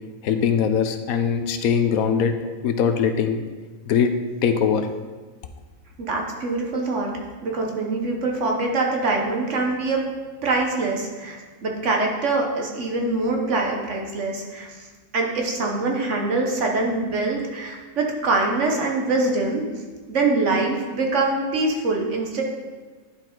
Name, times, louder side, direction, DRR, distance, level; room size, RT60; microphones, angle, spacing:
voice 1, 0.2-2.3 2.6-3.4 3.9-4.1 4.4-4.9, left 7 dB, 85° left, 8 dB, 1.1 m, -21 dB
voice 2, 6.0-7.1 7.4-10.0 10.4-14.9 15.1-19.6 20.1-22.4, right 3 dB, 60° right, 0 dB, 1.2 m, -24 dB
10.5 x 4.6 x 3.8 m, 1.4 s
omnidirectional pair, 1.5 m